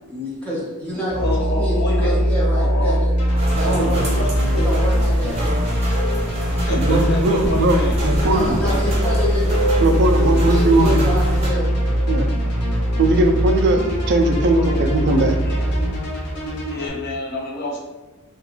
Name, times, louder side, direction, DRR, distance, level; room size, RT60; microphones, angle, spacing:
voice 1, 0.0-3.1 3.6-4.0 4.5-5.6 8.2-9.6 10.1-11.6, equal, 5° left, -8 dB, 0.7 m, -27 dB
Musical instrument, 1.1-16.1, equal, 35° left, 1.0 m, -21 dB
voice 2, 1.2-3.1 3.6-4.7 6.5-8.0 8.6-8.9 14.4-14.8 15.4-15.6 16.7-17.8, left 1 dB, 50° left, -1 dB, 0.6 m, -28 dB
sound 1, 3.2-16.9, equal, 85° left, 0.7 m, -30 dB
sound 2, 3.3-11.5, right 1 dB, 30° right, 0.8 m, -31 dB
voice 3, 6.7-8.6 9.8-11.0 12.1-12.3 13.0-15.4, right 2 dB, 50° right, 5 dB, 0.3 m, -19 dB
2.4 x 2.3 x 2.9 m, 1.2 s
head